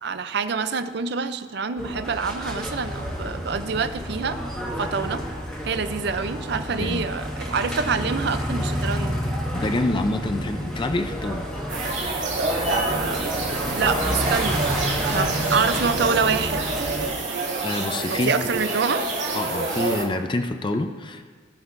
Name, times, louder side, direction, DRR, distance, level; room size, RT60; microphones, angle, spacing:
voice 1, 0.0-4.4 4.8-5.2 5.6-9.2 12.7-13.3 13.8-14.6 15.0-16.7 18.1-19.1, right 5 dB, 60° right, 11 dB, 0.5 m, -26 dB
sound 1, 1.8-17.1, equal, 5° left, 1.4 m, -30 dB
voice 2, 6.8-7.1 9.5-11.4 17.6-18.3 19.3-21.2, left 2 dB, 25° left, 6 dB, 0.4 m, -26 dB
sound 2, 11.7-20.0, right 3 dB, 80° right, 2.4 m, -27 dB
17.0 x 6.3 x 2.6 m, 1.5 s
head